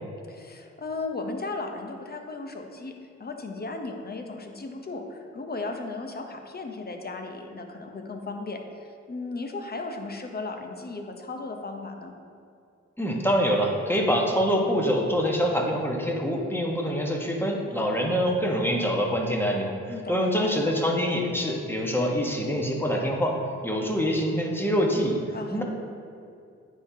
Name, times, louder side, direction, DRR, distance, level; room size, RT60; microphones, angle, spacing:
voice 1, 0.3-2.9 3.2-12.1 19.9-20.6 25.3-25.6, left 3 dB, 35° left, 4 dB, 0.9 m, -36 dB
voice 2, 13.0-23.4 23.6-25.2 25.5-25.6, equal, 5° left, 0 dB, 1.2 m, -25 dB
9.5 x 3.8 x 2.8 m, 2.4 s
supercardioid pair, 40°, 29 cm